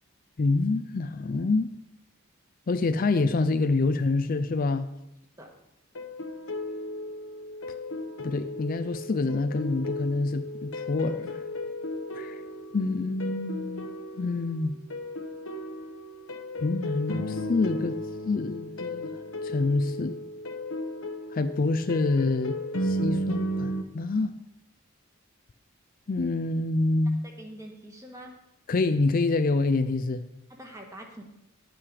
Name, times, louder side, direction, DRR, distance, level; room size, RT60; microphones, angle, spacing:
voice 1, 0.4-1.7 2.7-4.9 8.2-11.4 12.1-12.4 12.7-13.9 14.2-14.8 16.6-18.0 18.3-19.1 19.4-20.2 21.3-22.6 22.8-24.3 26.1-27.2 28.7-30.2, left 3 dB, 40° left, 9 dB, 0.4 m, -26 dB
sound 1, 5.9-23.8, left 1 dB, 75° left, 1.1 m, -35 dB
voice 2, 27.2-28.3 30.6-31.2, right 1 dB, 15° right, 1 dB, 1.6 m, -44 dB
10.0 x 8.7 x 4.9 m, 0.88 s
head